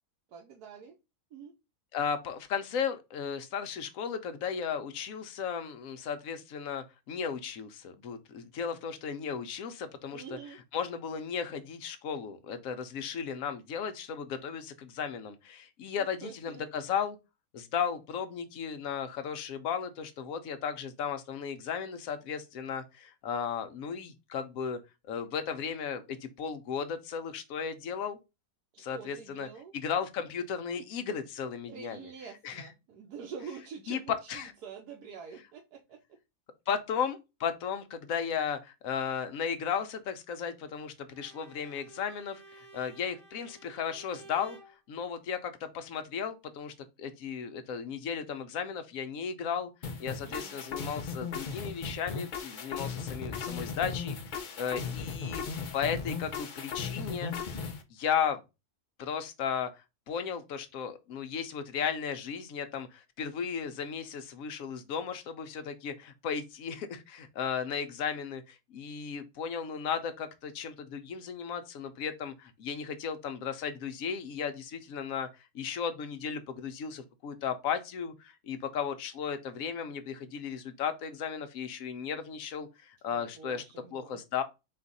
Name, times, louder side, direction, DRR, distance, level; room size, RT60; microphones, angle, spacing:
voice 1, 0.3-1.0 1.3-1.5 10.1-10.6 16.0-16.7 28.7-29.7 31.7-36.2 50.2-50.5 83.1-84.2, right 6 dB, 80° right, 1.3 m, -46 dB
voice 2, 1.9-10.4 10.7-17.2 17.5-24.8 25.1-28.2 28.8-29.5 29.7-32.1 32.4-32.7 33.9-34.0 34.3-34.5 36.7-44.6 44.9-49.7 50.0-55.4 55.7-57.3 57.9-58.4 59.0-83.6 83.9-84.4, left 7 dB, 65° left, 1.0 m, -35 dB
Bowed string instrument, 41.1-44.8, right 3 dB, 35° right, 0.4 m, -53 dB
sound 1, 49.8-57.8, left 5 dB, 80° left, 0.4 m, -37 dB
4.4 x 2.4 x 4.0 m
omnidirectional pair, 1.7 m